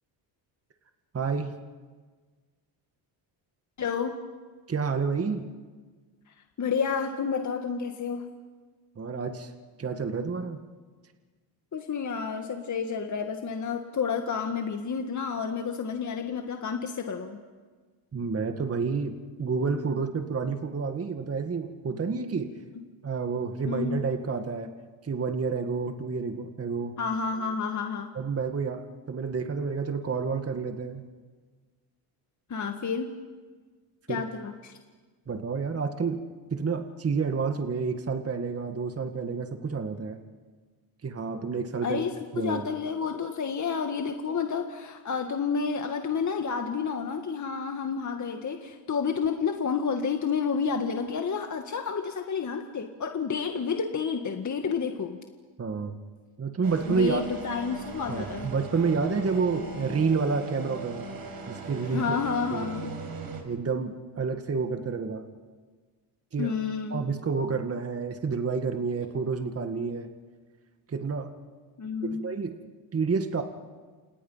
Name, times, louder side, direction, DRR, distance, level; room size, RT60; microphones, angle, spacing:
voice 1, 1.1-1.5 4.7-5.5 9.0-9.5 9.8-10.6 18.1-22.5 23.0-24.7 25.0-26.9 28.2-31.1 34.1-34.2 35.3-36.2 36.5-40.2 41.0-42.0 42.3-42.6 55.6-56.0 56.4-57.2 58.1-61.1 61.5-62.2 62.5-62.7 63.4-65.3 66.3-66.5 66.9-70.1 70.9-71.3 72.1-72.6 72.9-73.4, right 5 dB, 30° right, 6 dB, 2.0 m, -29 dB
voice 2, 3.8-4.2 6.6-8.3 11.7-17.4 23.7-24.1 27.0-28.1 32.5-33.2 34.1-34.8 41.8-55.2 56.9-58.5 61.9-63.0 66.4-67.0 71.8-72.2, left 6 dB, 35° left, 4 dB, 1.9 m, -30 dB
sound 1, 56.6-63.4, right 3 dB, 50° right, 6.1 m, -39 dB
29.5 x 28.5 x 5.8 m, 1.4 s
cardioid pair, 100°, 47 cm